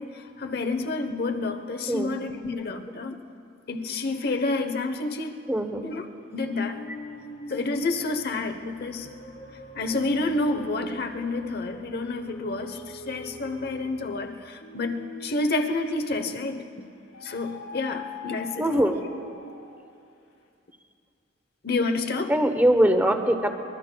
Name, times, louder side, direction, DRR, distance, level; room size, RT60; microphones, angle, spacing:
voice 1, 0.0-3.2 3.7-5.4 5.8-6.1 6.3-6.8 7.5-9.1 9.7-16.9 17.2-18.8 21.6-22.3, left 3 dB, 55° left, 7 dB, 0.9 m, -29 dB
voice 2, 5.5-5.8 18.6-19.0 22.3-23.5, right 1 dB, 10° right, 6 dB, 0.9 m, -22 dB
sound 1, 6.4-16.6 17.1-19.9, left 2 dB, 80° left, 2.3 m, -44 dB
24.5 x 22.0 x 2.3 m, 2.5 s
head